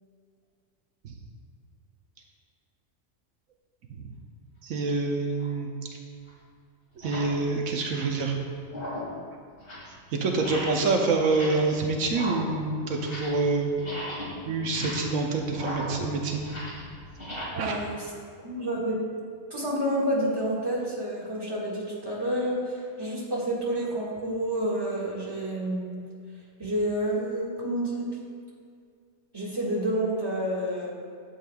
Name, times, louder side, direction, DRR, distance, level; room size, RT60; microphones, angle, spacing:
voice 1, 4.6-5.7 7.0-8.4 10.1-13.7 14.5-16.5 17.6-17.8, right 3 dB, 80° right, 2 dB, 1.2 m, -26 dB
sound 1, 5.4-5.6 6.3-6.4 6.9-7.4 7.8-8.2 8.6-9.2 9.5-9.9 10.3-10.9 11.2-11.8 12.0-13.5 13.7-17.4, equal, 45° left, 2.4 m, -37 dB
voice 2, 17.5-18.1 18.4-19.0 19.5-25.8 26.6-28.2 29.3-30.9, right 1 dB, 20° right, -6 dB, 1.7 m, -29 dB
12.0 x 7.7 x 2.3 m, 2.2 s
omnidirectional pair, 1.4 m